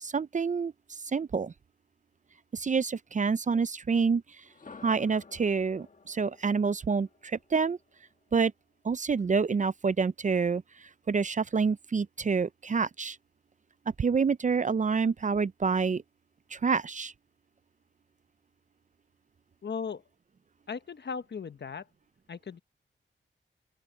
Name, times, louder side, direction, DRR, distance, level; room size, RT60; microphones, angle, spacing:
voice 1, 0.0-1.5 2.5-4.2 4.8-7.8 8.3-8.5 8.8-10.6 11.1-13.2 14.0-16.0 16.5-17.1, right 5 dB, 35° right, 0.5 m, -27 dB
sound 1, 4.4-8.4, left 4 dB, 40° left, 1.7 m, -53 dB
voice 2, 19.6-20.0 20.7-21.9 22.3-22.6, left 6 dB, 55° left, 1.0 m, -37 dB
open air
wide cardioid pair, 90°, 21 cm